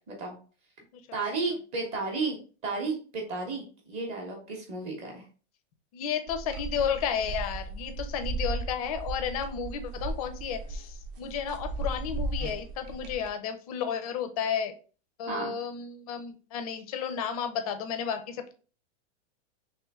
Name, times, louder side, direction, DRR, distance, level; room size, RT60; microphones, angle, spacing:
voice 1, 1.1-5.2 15.3-15.5, right 3 dB, 20° right, 1 dB, 0.7 m, -33 dB
voice 2, 5.9-14.7 15.2-18.5, left 7 dB, 35° left, 8 dB, 0.4 m, -32 dB
sound 1, 6.3-13.3, right 2 dB, 50° right, 0.8 m, -36 dB
3.1 x 2.9 x 3.4 m, 0.38 s
supercardioid pair, 165°, 34 cm